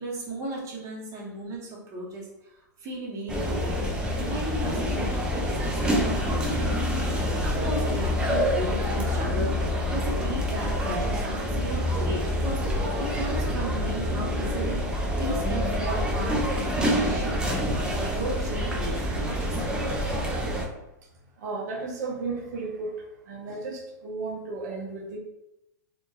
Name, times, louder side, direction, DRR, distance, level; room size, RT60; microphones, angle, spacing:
voice 1, 0.0-2.5 2.8-6.7 7.4-14.9 15.2-19.7, right 1 dB, 30° right, -3 dB, 0.8 m, -35 dB
sound 1, 3.3-20.6, equal, 10° right, 0.4 m, -27 dB
voice 2, 21.4-22.9 23.3-25.2, right 3 dB, 60° right, 1 dB, 0.5 m, -34 dB
2.6 x 2.2 x 2.2 m, 0.91 s
hypercardioid pair, 115°, 10 cm